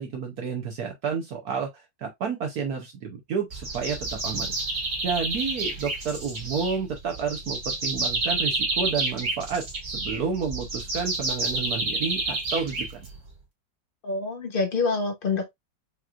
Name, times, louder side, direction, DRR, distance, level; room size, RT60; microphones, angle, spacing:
voice 1, 0.0-1.7 2.0-4.5 5.0-13.0, right 6 dB, 65° right, 1.2 m, -30 dB
sound 1, 3.5-13.3, right 2 dB, 40° right, 1.9 m, -29 dB
voice 2, 14.0-15.5, left 4 dB, 85° left, 0.4 m, -26 dB
5.0 x 2.9 x 2.3 m
omnidirectional pair, 2.0 m